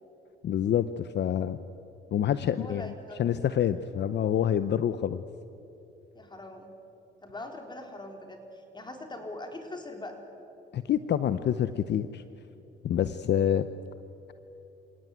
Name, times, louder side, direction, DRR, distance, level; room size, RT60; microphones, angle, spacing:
voice 1, 0.4-1.6 2.1-2.9 3.2-5.2 10.7-12.2 12.8-13.7, left 9 dB, 60° left, 13 dB, 0.8 m, -27 dB
voice 2, 2.5-3.3 6.1-6.7 7.2-10.2, left 2 dB, 20° left, 4 dB, 4.1 m, -42 dB
27.5 x 17.0 x 9.5 m, 2.9 s
cardioid pair, 90°, 20 cm